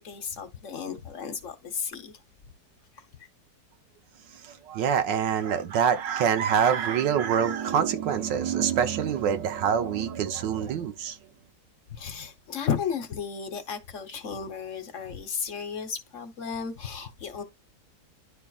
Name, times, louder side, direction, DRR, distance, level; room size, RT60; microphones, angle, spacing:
voice 1, 0.0-2.2 3.2-3.3 11.9-17.4, left 7 dB, 50° left, 1.2 m, -34 dB
voice 2, 4.3-11.2, right 8 dB, 85° right, 1.5 m, -25 dB
11.0 x 4.5 x 2.3 m
omnidirectional pair, 1.9 m